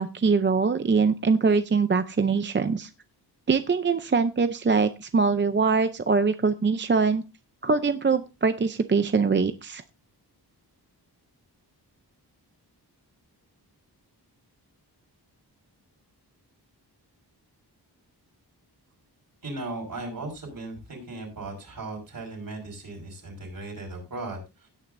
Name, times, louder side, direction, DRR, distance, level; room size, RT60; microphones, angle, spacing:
voice 1, 0.0-2.9 3.5-7.2 7.6-9.8, right 4 dB, 30° right, 10 dB, 0.6 m, -23 dB
voice 2, 19.4-24.7, right 2 dB, 55° right, 2 dB, 5.5 m, -37 dB
16.5 x 9.2 x 2.6 m, 0.26 s
wide cardioid pair, 170°, 41 cm